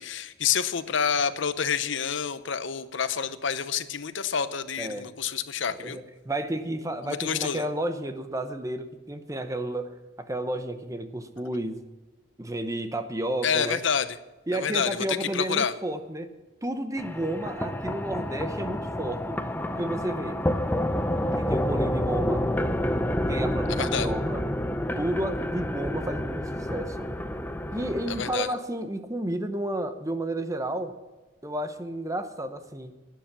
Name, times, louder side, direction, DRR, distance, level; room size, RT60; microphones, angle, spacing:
voice 1, 0.0-6.0 7.0-7.6 13.4-14.1 14.5-15.7 23.7-24.1 28.1-28.5, left 7 dB, 65° left, 13 dB, 0.8 m, -28 dB
voice 2, 4.8-5.1 5.8-11.9 12.4-13.8 14.5-16.3 16.6-19.4 19.8-20.4 21.3-22.4 23.3-24.4 24.9-27.1 27.7-31.0 31.4-32.9, right 1 dB, 15° right, 9 dB, 0.8 m, -32 dB
sound 1, 17.0-28.3, left 1 dB, 10° left, 0.6 m, -29 dB
11.5 x 9.4 x 7.4 m, 1.2 s
head